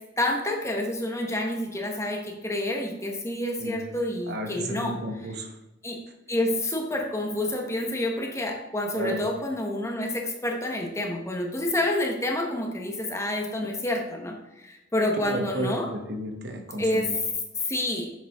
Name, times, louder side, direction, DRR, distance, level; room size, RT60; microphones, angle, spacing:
voice 1, 0.2-5.0 5.8-6.0 6.3-15.9 16.8-17.3 17.6-18.1, left 1 dB, 15° left, 1 dB, 0.9 m, -28 dB
voice 2, 4.3-5.5 8.9-9.2 15.2-17.2, right 1 dB, 55° right, 3 dB, 1.1 m, -33 dB
7.5 x 6.8 x 3.5 m, 0.93 s
head